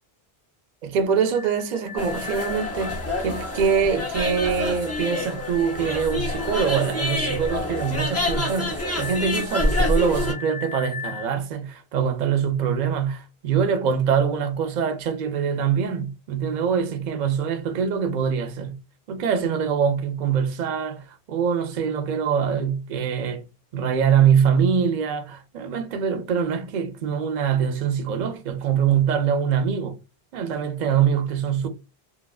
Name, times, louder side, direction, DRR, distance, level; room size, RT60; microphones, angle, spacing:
voice 1, 0.8-18.8 19.1-23.4 23.7-30.0 30.3-31.7, right 7 dB, 55° right, 0.5 m, -24 dB
sound 1, 1.1-11.3, left 6 dB, 65° left, 0.8 m, -39 dB
sound 2, 2.0-10.3, left 1 dB, 25° left, 0.4 m, -27 dB
3.1 x 2.3 x 2.3 m
omnidirectional pair, 1.0 m